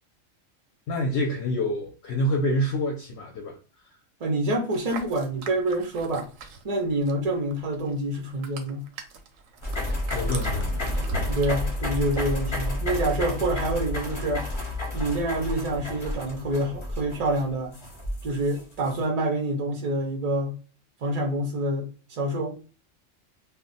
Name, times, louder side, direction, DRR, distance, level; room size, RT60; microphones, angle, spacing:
voice 1, 0.9-3.6 10.1-10.8, left 1 dB, 65° left, 0.7 m, -27 dB
voice 2, 4.2-6.3 6.6-8.8 11.3-14.5 14.9-17.7 18.2-20.5 21.0-22.6, right 1 dB, 50° right, 0.5 m, -27 dB
sound 1, 4.7-7.3 7.5-12.5, right 3 dB, 85° right, 1.0 m, -38 dB
sound 2, 9.6-18.9, left 1 dB, 30° left, 0.6 m, -30 dB
2.3 x 2.1 x 3.8 m
omnidirectional pair, 1.3 m